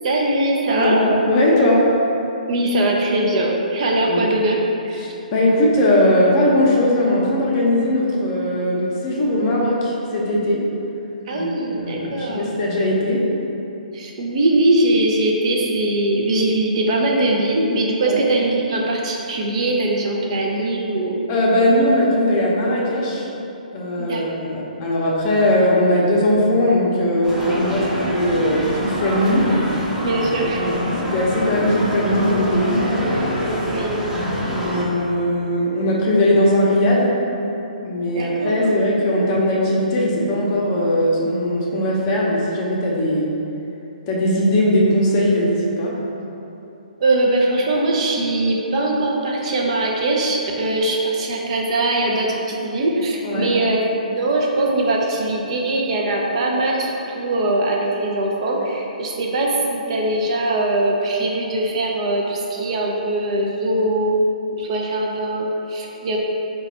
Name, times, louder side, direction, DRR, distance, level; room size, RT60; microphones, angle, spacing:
voice 1, 0.0-1.0 2.5-5.0 11.3-12.5 13.9-21.2 24.0-24.2 30.0-30.6 33.5-34.1 38.2-38.7 47.0-53.8 54.1-64.2 64.5-66.2, right 2 dB, 45° right, -1 dB, 0.5 m, -21 dB
voice 2, 0.8-2.0 4.1-4.2 5.0-10.7 11.3-13.3 18.0-18.2 21.3-23.3 23.7-29.6 30.4-32.8 34.5-37.2 37.8-43.4 44.1-46.0 53.2-53.5, left 1 dB, 35° left, -4 dB, 0.7 m, -19 dB
sound 1, 27.2-34.8, equal, 10° right, 0.8 m, -25 dB
3.9 x 2.3 x 4.1 m, 3.0 s
hypercardioid pair, 135°, 5 cm